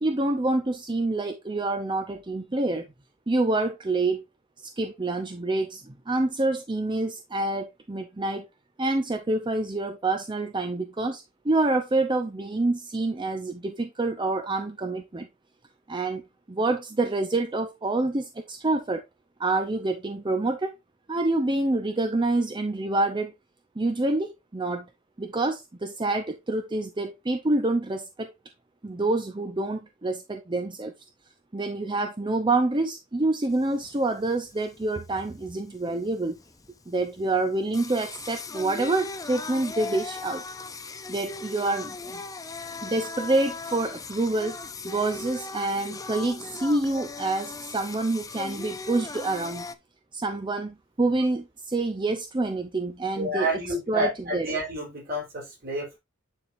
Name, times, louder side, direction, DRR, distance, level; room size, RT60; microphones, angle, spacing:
voice 1, 0.0-2.9 3.3-4.2 4.8-8.5 8.8-15.3 15.9-16.2 16.5-19.0 19.4-20.7 21.1-23.3 23.8-24.9 25.2-28.3 28.8-30.9 31.5-36.4 36.9-40.4 41.1-42.2 42.8-44.6 44.8-49.6 50.1-53.6 53.9-54.5, right 2 dB, 25° right, 0.6 m, -27 dB
Singing, 33.5-49.8, left 3 dB, 20° left, 0.5 m, -38 dB
voice 2, 53.2-56.0, right 1 dB, 50° right, 3.9 m, -29 dB
9.9 x 4.3 x 2.6 m
head